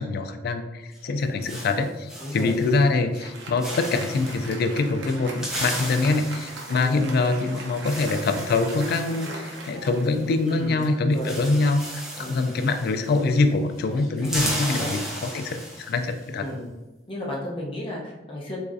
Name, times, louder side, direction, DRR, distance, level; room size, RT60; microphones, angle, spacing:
voice 1, 0.0-16.5, left 3 dB, 55° left, 8 dB, 0.3 m, -24 dB
sound 1, 0.9-2.9 3.2-3.4 3.6-4.5 5.1-10.5 10.8-10.9 11.1-13.5 13.8-16.2, equal, 5° right, 0.8 m, -35 dB
voice 2, 2.2-2.6 6.0-6.2 6.7-7.1 10.4-10.8 11.1-11.3 12.2-12.5 14.2-14.3 14.6-15.0 16.4-16.7 17.1-18.6, left 1 dB, 30° left, -3 dB, 0.7 m, -34 dB
Applause, 2.6-12.4, right 2 dB, 70° right, 0.7 m, -41 dB
3.5 x 3.0 x 2.6 m, 1.1 s
head